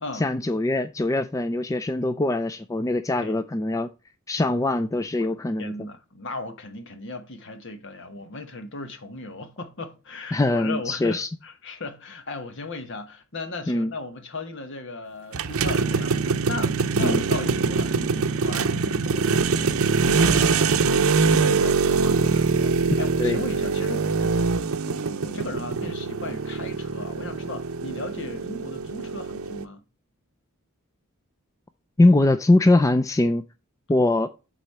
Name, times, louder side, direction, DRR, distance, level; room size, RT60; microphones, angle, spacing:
voice 1, 0.1-3.9 4.3-5.7 10.3-11.3 13.7-13.9 17.0-17.2 23.2-23.4 32.0-33.4 33.9-34.3, left 2 dB, 15° left, 0.3 m, -22 dB
voice 2, 5.6-29.8, left 2 dB, 60° left, 1.2 m, -37 dB
sound 1, 15.3-29.6, right 4 dB, 80° right, 0.6 m, -23 dB
8.1 x 4.0 x 4.2 m
head